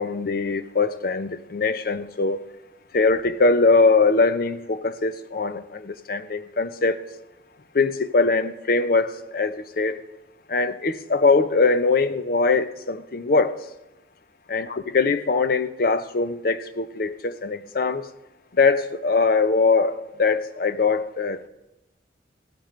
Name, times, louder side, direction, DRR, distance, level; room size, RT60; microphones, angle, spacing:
voice 1, 0.0-2.4 2.9-7.0 7.7-10.0 10.5-13.5 14.5-18.0 18.6-21.5, left 4 dB, 55° left, 12 dB, 0.6 m, -22 dB
15.5 x 8.9 x 3.2 m, 0.98 s
head